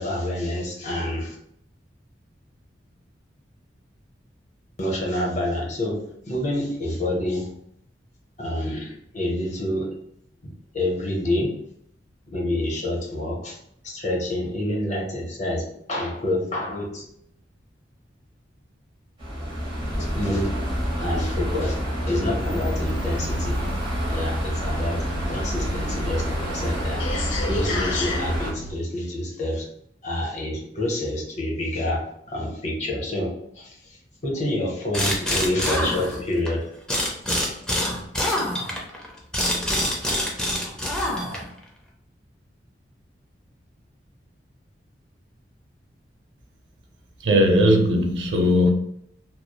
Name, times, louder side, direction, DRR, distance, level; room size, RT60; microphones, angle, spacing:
voice 1, 0.0-1.4 4.8-7.5 8.4-9.9 10.4-11.6 12.3-13.6 13.8-17.0 19.9-21.8 22.1-23.7 24.1-27.0 27.4-29.7 30.0-36.7, left 1 dB, 40° left, -2 dB, 0.7 m, -28 dB
sound 1, 19.2-28.5, equal, 25° right, 0.9 m, -27 dB
sound 2, 22.8-28.7, left 2 dB, 85° left, 0.4 m, -33 dB
sound 3, 34.9-36.5 36.9-41.6, left 1 dB, 5° left, 0.4 m, -25 dB
voice 2, 47.2-48.7, equal, 75° right, 2 dB, 0.5 m, -18 dB
2.9 x 2.0 x 2.2 m, 0.70 s
head